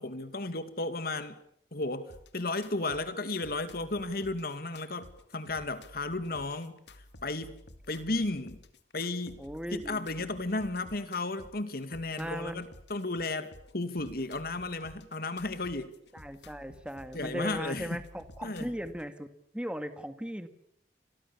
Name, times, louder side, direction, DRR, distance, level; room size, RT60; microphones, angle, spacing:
voice 1, 0.0-1.4 1.7-5.1 5.3-6.8 7.2-7.6 7.9-8.6 8.9-9.4 9.7-15.9 17.1-18.0 18.4-18.7, left 2 dB, 60° left, 2.4 m, -34 dB
sound 1, 2.1-19.1, left 1 dB, 80° left, 2.2 m, -53 dB
voice 2, 9.4-10.0 12.1-12.7 16.1-20.5, equal, 5° right, 1.9 m, -38 dB
30.0 x 23.0 x 7.1 m
head